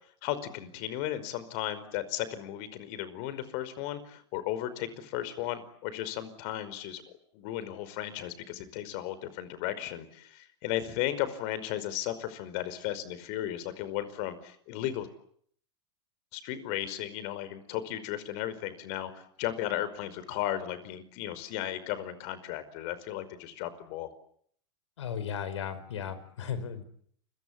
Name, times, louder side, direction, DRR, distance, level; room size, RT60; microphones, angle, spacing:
voice 1, 0.2-7.0 7.3-15.1 16.3-24.1, left 12 dB, 50° left, 15 dB, 5.1 m, -35 dB
voice 2, 25.0-26.8, left 8 dB, 85° left, 14 dB, 5.3 m, -35 dB
29.0 x 23.5 x 8.8 m, 0.64 s
hypercardioid pair, 130°, 15 cm